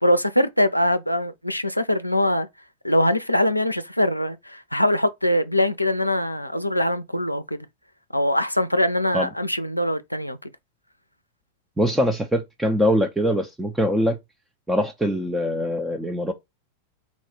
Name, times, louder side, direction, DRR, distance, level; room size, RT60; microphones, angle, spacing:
voice 1, 0.0-2.5 2.8-7.7 8.1-10.5, left 1 dB, 90° left, 0.4 m, -22 dB
voice 2, 11.8-14.2 14.7-16.3, equal, 5° right, 0.5 m, -23 dB
4.2 x 2.3 x 4.4 m
figure-of-eight pair, 90°, 0 cm